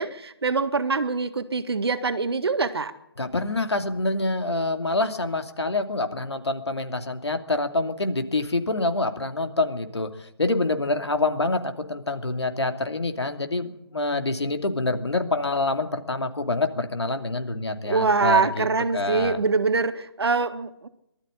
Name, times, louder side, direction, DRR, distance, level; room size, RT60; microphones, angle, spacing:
voice 1, 0.0-2.9 17.8-20.9, right 4 dB, 70° right, 10 dB, 1.8 m, -24 dB
voice 2, 3.2-18.7 18.9-19.4, left 2 dB, 90° left, 6 dB, 2.8 m, -26 dB
20.5 x 13.0 x 10.0 m, 0.84 s
figure-of-eight pair, 160°, 14 cm